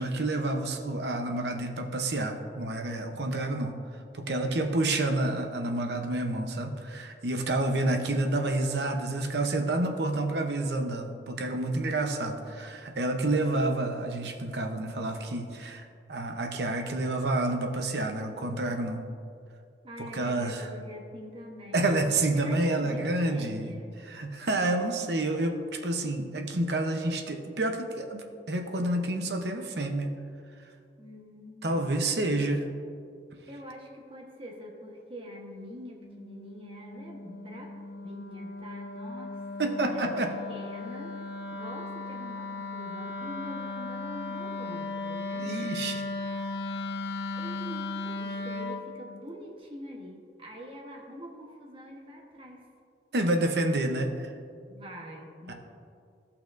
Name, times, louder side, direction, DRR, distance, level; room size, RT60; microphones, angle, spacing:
voice 1, 0.0-3.7 4.1-19.1 20.1-20.6 21.7-23.7 24.1-30.2 31.6-32.7 39.6-40.3 45.4-46.0 53.1-54.3 55.5-55.6, right 2 dB, 65° right, 4 dB, 0.8 m, -29 dB
voice 2, 4.3-4.6 19.8-22.0 22.3-24.0 31.0-31.7 33.5-37.7 38.0-40.2 40.5-46.0 47.3-52.7 54.7-55.5, equal, 30° right, 0 dB, 1.1 m, -45 dB
Wind instrument woodwind instrument, 35.9-48.9, left 3 dB, 75° left, 0.8 m, -36 dB
15.5 x 5.8 x 2.6 m, 2.3 s
head